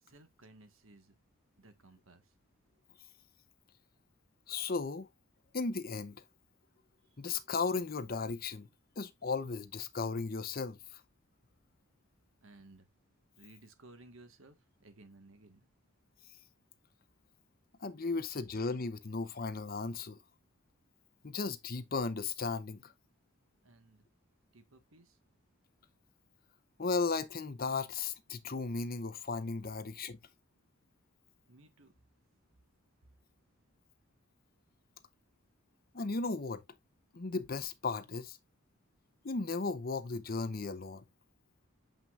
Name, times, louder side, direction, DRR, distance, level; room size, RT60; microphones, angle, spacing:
voice 1, 0.0-1.1 1.6-2.3 7.1-7.2 12.4-12.9 13.4-15.7 23.6-24.0 24.5-25.2 31.5-31.9, right 2 dB, 65° right, 1.5 m, -58 dB
voice 2, 4.5-5.1 5.5-6.2 7.2-8.7 9.0-11.0 17.8-20.2 21.2-22.9 26.8-30.2 35.9-36.6 37.1-38.4 39.2-41.0, left 4 dB, 40° left, 0.7 m, -35 dB
7.6 x 5.7 x 2.4 m
head